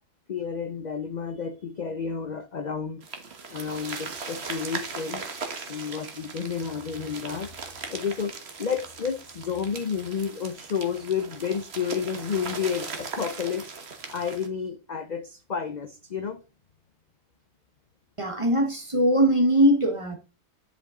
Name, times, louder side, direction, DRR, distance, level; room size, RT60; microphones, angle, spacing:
voice 1, 0.3-3.0 3.5-5.2 5.7-7.5 7.9-13.7 14.1-16.4, left 6 dB, 50° left, 0.5 m, -31 dB
sound 1, 3.0-14.5, right 4 dB, 50° right, 1.5 m, -38 dB
voice 2, 18.2-20.2, equal, 25° right, 1.1 m, -21 dB
9.9 x 5.3 x 3.7 m
omnidirectional pair, 1.4 m